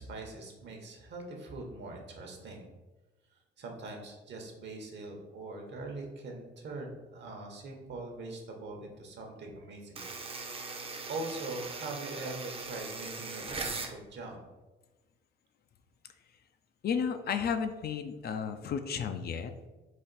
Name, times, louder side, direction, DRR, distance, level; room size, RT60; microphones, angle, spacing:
voice 1, 0.0-2.7 3.6-10.0 11.1-14.5, right 2 dB, 60° right, 2 dB, 1.0 m, -42 dB
sound 1, 10.0-14.0, right 3 dB, 30° right, 0.6 m, -40 dB
voice 2, 16.8-19.7, left 7 dB, 55° left, 9 dB, 0.4 m, -33 dB
4.1 x 2.5 x 3.9 m, 1.2 s
cardioid pair, 90°, 20 cm